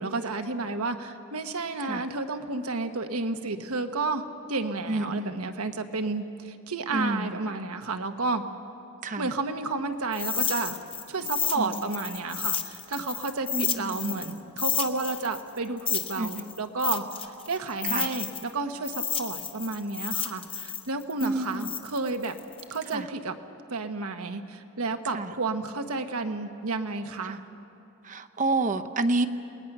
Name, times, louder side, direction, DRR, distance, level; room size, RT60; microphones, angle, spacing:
voice 1, 0.0-4.2 4.5-8.4 9.2-10.8 11.1-22.4 22.7-23.4 23.7-27.4, right 3 dB, 85° right, 1.2 m, -31 dB
voice 2, 4.9-5.3 6.9-7.2 9.0-9.2 11.6-11.7 13.5-13.8 16.2-16.4 17.9-18.0 21.2-21.7 25.1-25.2 28.1-29.3, right 2 dB, 35° right, 0.7 m, -28 dB
sound 1, 10.1-14.3 14.6-18.5 18.8-22.9, left 7 dB, 25° left, 1.0 m, -31 dB
28.5 x 20.0 x 6.1 m
head